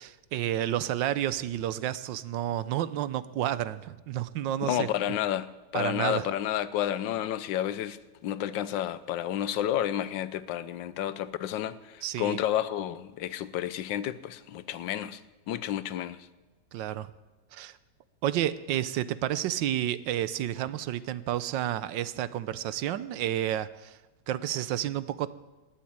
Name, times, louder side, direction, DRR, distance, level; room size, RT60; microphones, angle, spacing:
voice 1, 0.0-4.9 5.7-6.3 12.0-12.4 16.7-17.1 17.5-17.8 18.2-24.0 24.3-25.3, right 12 dB, 85° right, 1.4 m, -30 dB
voice 2, 4.6-5.5 5.7-15.2 15.5-16.2, left 11 dB, 85° left, 1.4 m, -31 dB
20.0 x 7.5 x 8.8 m
omnidirectional pair, 2.0 m